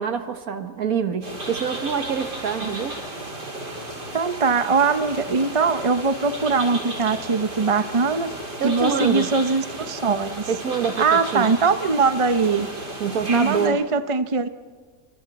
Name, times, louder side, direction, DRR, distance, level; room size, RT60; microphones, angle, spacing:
voice 1, 0.0-3.0 8.6-9.3 10.5-11.5 13.0-13.8, right 6 dB, 60° right, 7 dB, 1.8 m, -26 dB
sound 1, 1.2-13.7, right 1 dB, 90° right, 7.8 m, -34 dB
voice 2, 4.1-8.3 8.6-10.5 11.0-12.7 13.3-14.5, right 4 dB, 30° right, 9 dB, 0.6 m, -21 dB
28.0 x 27.0 x 4.2 m, 1.5 s
omnidirectional pair, 1.8 m